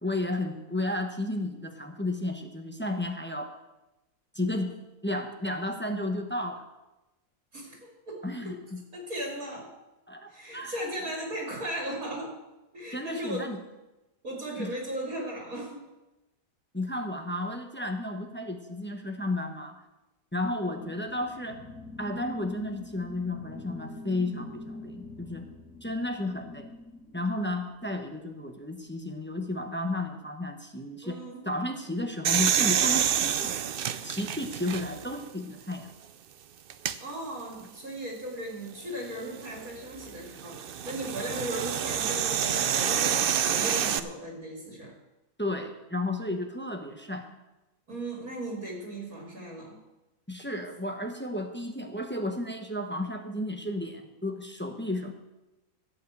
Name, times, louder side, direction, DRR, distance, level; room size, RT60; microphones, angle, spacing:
voice 1, 0.0-3.5 4.3-4.7 5.0-6.7 8.2-8.8 10.1-10.7 12.9-13.6 14.6-14.7 16.7-19.8 20.3-21.6 22.0-25.5 25.8-26.7 27.1-31.2 31.4-33.6 34.0-35.9 45.4-47.4 50.3-55.1, left 1 dB, 10° left, 4 dB, 0.9 m, -33 dB
voice 2, 7.5-8.6 8.9-9.7 10.3-12.4 12.7-13.5 14.2-15.8 31.0-31.4 37.0-45.0 47.9-49.8, right 1 dB, 65° right, -1 dB, 2.8 m, -37 dB
sound 1, 20.4-28.2, left 2 dB, 65° left, 2.6 m, -44 dB
sound 2, 32.2-35.2 35.7-35.8 36.7-37.0 39.1-44.0, right 9 dB, 85° right, 0.5 m, -28 dB
15.5 x 5.7 x 8.0 m, 1.0 s
omnidirectional pair, 1.6 m